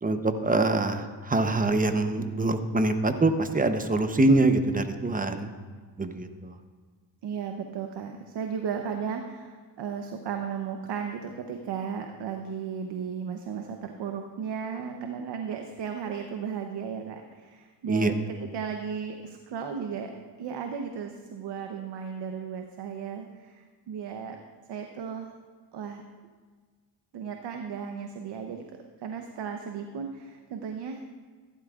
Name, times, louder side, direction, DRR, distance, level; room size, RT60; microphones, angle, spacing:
voice 1, 0.0-5.5 6.0-6.6 17.9-18.1, right 2 dB, 20° right, 8 dB, 0.8 m, -24 dB
voice 2, 7.2-20.1 20.4-24.4 24.7-25.3 25.7-26.0 27.1-28.6 29.0-31.0, right 7 dB, 70° right, 4 dB, 0.9 m, -35 dB
15.0 x 12.0 x 2.4 m, 1.5 s
cardioid pair, 85°, 44 cm